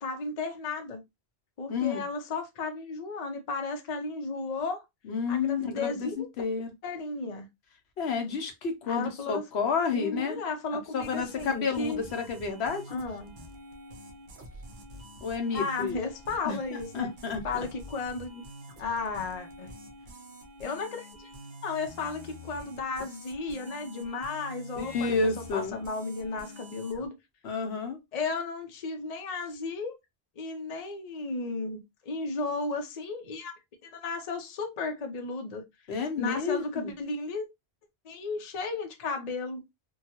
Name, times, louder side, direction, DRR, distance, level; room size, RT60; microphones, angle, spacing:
voice 1, 0.0-1.0 1.6-4.8 5.3-6.3 6.8-7.5 8.9-9.4 9.9-12.0 12.9-13.3 15.5-17.1 17.4-18.4 18.8-19.7 20.6-21.3 21.6-27.1 28.1-29.9 30.4-35.6 36.1-37.5 38.0-39.6, left 3 dB, 45° left, 0.6 m, -34 dB
voice 2, 1.7-2.0 5.1-6.7 8.0-10.4 10.7-13.0 15.2-16.0 16.4-17.6 24.8-25.8 27.4-28.0 35.9-36.9, left 5 dB, 85° left, 1.0 m, -30 dB
sound 1, 11.0-27.1, equal, 55° right, 0.8 m, -47 dB
2.8 x 2.2 x 2.7 m
omnidirectional pair, 1.0 m